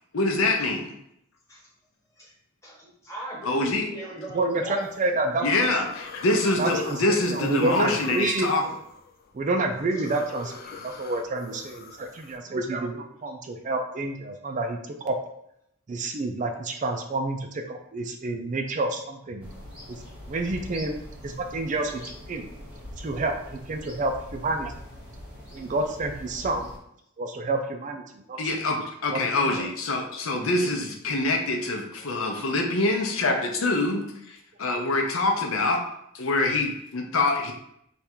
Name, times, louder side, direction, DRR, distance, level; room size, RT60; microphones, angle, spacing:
voice 1, 0.1-0.9 3.4-3.9 5.4-8.6 28.4-35.8 36.1-37.5, left 2 dB, 80° left, 2 dB, 0.7 m, -25 dB
voice 2, 2.6-4.8 10.7-11.0, equal, 15° left, -5 dB, 1.2 m, -39 dB
voice 3, 4.3-5.7 6.6-8.5 9.3-10.5 10.8-15.1 15.9-19.5 19.9-20.0 20.3-22.5 23.0-24.7 25.5-26.7 27.2-28.8 29.1-29.6, right 2 dB, 35° right, 4 dB, 0.4 m, -29 dB
sound 1, 4.8-5.2 5.7-12.4, left 4 dB, 45° left, 0.4 m, -41 dB
sound 2, 19.4-26.8, left 1 dB, 5° right, 1.0 m, -43 dB
3.5 x 2.4 x 4.3 m, 0.75 s
head